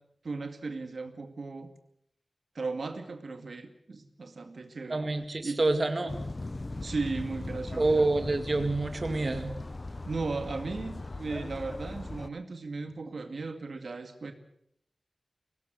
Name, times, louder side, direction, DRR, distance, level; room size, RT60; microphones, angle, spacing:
voice 1, 0.2-1.7 2.5-5.1 5.4-5.6 6.8-8.1 10.1-14.3, right 3 dB, 75° right, 7 dB, 2.2 m, -36 dB
voice 2, 4.9-6.1 7.8-9.6, right 2 dB, 45° right, 7 dB, 2.1 m, -27 dB
sound 1, 6.1-12.3, left 2 dB, 35° left, 0.9 m, -39 dB
24.0 x 18.5 x 7.8 m, 0.71 s
wide cardioid pair, 95°, 0 cm